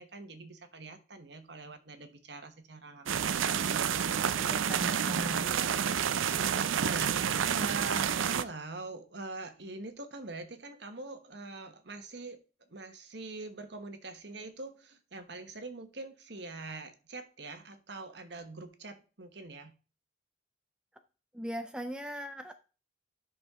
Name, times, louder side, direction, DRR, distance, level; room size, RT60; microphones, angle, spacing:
voice 1, 0.0-3.4 6.8-12.4 12.7-19.7, right 3 dB, 60° right, 8 dB, 1.2 m, -43 dB
sound 1, 3.1-8.4, right 8 dB, 80° right, 0.5 m, -29 dB
voice 2, 4.4-5.5 21.3-22.5, equal, 5° right, 6 dB, 0.4 m, -39 dB
11.0 x 6.2 x 3.6 m, 0.36 s
head